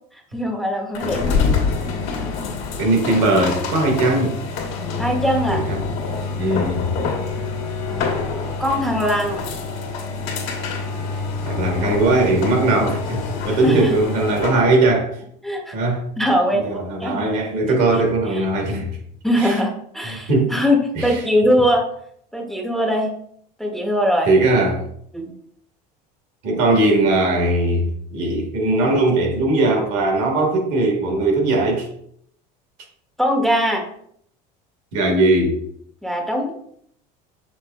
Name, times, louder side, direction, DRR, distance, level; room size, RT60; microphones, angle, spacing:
voice 1, 0.3-1.4 5.0-5.7 7.9-9.4 13.6-14.0 15.4-15.8 16.2-17.3 17.9-18.0 18.3-18.5 19.2-21.9 22.3-23.2 23.6-24.3 25.1-25.3 33.2-33.9 36.0-36.5, equal, ahead, 2 dB, 0.7 m, -21 dB
sound 1, 0.9-14.7, left 4 dB, 70° left, 1.3 m, -26 dB
voice 2, 2.8-4.4 5.5-5.8 6.2-6.9 11.4-15.1 15.7-16.0 16.6-18.9 19.4-19.5 20.3-20.5 20.9-21.2 24.3-24.9 26.4-31.9 34.9-35.6, right 2 dB, 70° right, 2 dB, 1.5 m, -19 dB
6.0 x 3.7 x 2.3 m, 0.67 s
supercardioid pair, 100°, 20 cm